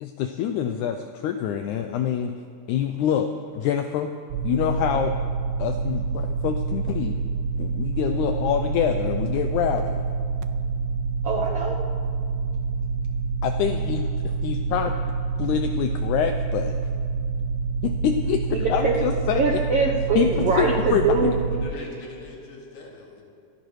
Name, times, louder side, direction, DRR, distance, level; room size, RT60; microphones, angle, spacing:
voice 1, 0.0-2.3 2.7-3.3 3.5-4.1 4.4-5.1 5.6-7.2 7.6-10.0 13.4-14.1 14.4-15.0 15.4-16.8 17.8-19.6 20.2-21.0, left 9 dB, 85° left, 6 dB, 1.7 m, -26 dB
sound 1, 4.3-21.7, right 4 dB, 85° right, 2.3 m, -27 dB
voice 2, 11.2-11.8 18.5-21.4, right 3 dB, 70° right, -2 dB, 1.4 m, -23 dB
voice 3, 21.5-23.2, left 2 dB, 65° left, -2 dB, 3.5 m, -41 dB
26.5 x 11.0 x 3.2 m, 2.4 s
omnidirectional pair, 4.0 m